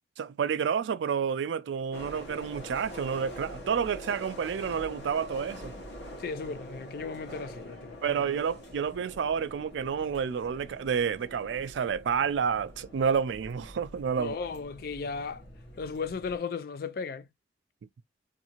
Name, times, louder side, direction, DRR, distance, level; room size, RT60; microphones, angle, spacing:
voice 1, 0.2-5.7 8.0-14.4, right 7 dB, 85° right, 0.3 m, -29 dB
sound 1, 1.9-16.4, equal, 80° left, 1.0 m, -45 dB
voice 2, 6.2-8.3 14.2-15.4 15.8-17.3, left 5 dB, 55° left, 0.3 m, -36 dB
2.6 x 2.6 x 2.9 m
head